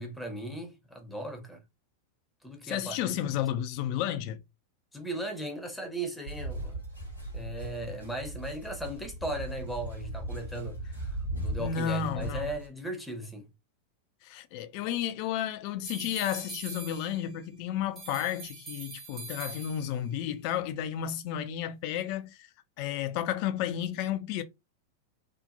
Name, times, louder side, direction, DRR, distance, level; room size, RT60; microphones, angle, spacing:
voice 1, 0.0-1.6 2.4-3.3 4.9-6.8 7.3-13.5, right 1 dB, 5° left, 0.7 m, -37 dB
voice 2, 2.6-4.4 11.6-12.5 14.2-22.5 22.8-24.4, left 10 dB, 45° left, 0.4 m, -32 dB
sound 1, 6.2-12.7, right 1 dB, 90° right, 1.0 m, -38 dB
sound 2, 15.8-17.5 18.0-20.2, right 3 dB, 20° right, 1.1 m, -43 dB
2.8 x 2.1 x 2.3 m
figure-of-eight pair, 90°, 0 cm